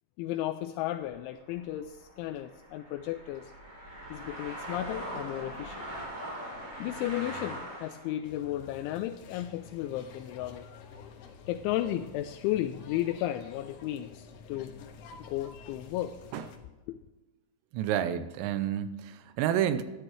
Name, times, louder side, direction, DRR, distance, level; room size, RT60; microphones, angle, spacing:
voice 1, 0.2-3.5 4.1-5.9 6.8-10.6 11.5-14.7 15.2-16.2 16.9-17.0, left 13 dB, 85° left, 7 dB, 2.7 m, -34 dB
sound 1, 1.0-8.1, equal, 25° right, 2.8 m, -41 dB
sound 2, 8.2-16.6, left 5 dB, 70° left, 2.7 m, -49 dB
voice 2, 17.7-19.8, right 10 dB, 90° right, 11 dB, 3.4 m, -29 dB
13.5 x 11.0 x 3.2 m, 1.1 s
omnidirectional pair, 5.8 m